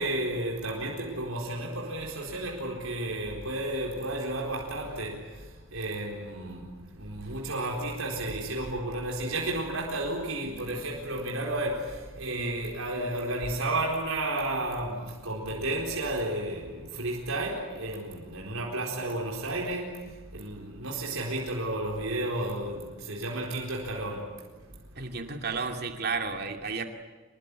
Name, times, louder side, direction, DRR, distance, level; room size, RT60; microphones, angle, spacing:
voice 1, 0.0-24.5 25.0-25.1 25.4-25.5, right 1 dB, 80° right, 4.4 m, -32 dB
voice 2, 25.0-26.8, right 4 dB, 50° right, 2.6 m, -32 dB
26.5 x 21.0 x 9.9 m
head